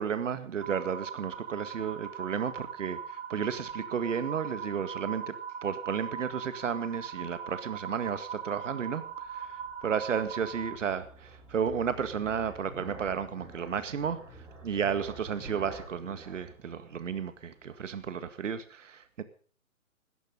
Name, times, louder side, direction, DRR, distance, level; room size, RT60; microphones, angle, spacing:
voice 1, 0.0-3.0 3.3-5.2 5.6-9.0 9.3-9.5 9.8-14.2 14.6-19.2, right 7 dB, 65° right, 11 dB, 2.0 m, -32 dB
sound 1, 0.6-10.8, right 7 dB, 45° right, 7.7 m, -40 dB
sound 2, 8.3-17.8, right 1 dB, 5° right, 4.3 m, -49 dB
16.5 x 14.0 x 5.5 m, 0.43 s
hypercardioid pair, 155°, 41 cm